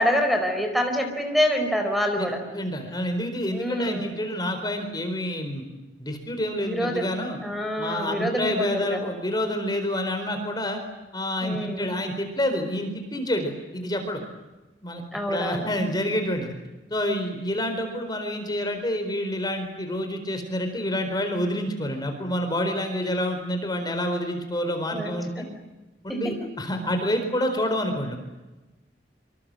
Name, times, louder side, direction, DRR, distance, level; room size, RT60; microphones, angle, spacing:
voice 1, 0.0-2.4 3.5-4.2 6.6-7.1 7.4-9.1 11.4-12.0 15.1-15.7 24.9-25.5 26.1-26.2, equal, ahead, 5 dB, 4.5 m, -26 dB
voice 2, 2.2-5.6 6.0-7.4 7.8-10.8 11.1-14.2 14.8-15.0 15.3-16.5 16.9-25.5 26.0-28.2, left 1 dB, 25° left, 6 dB, 4.3 m, -28 dB
27.0 x 26.5 x 7.7 m, 1.1 s
head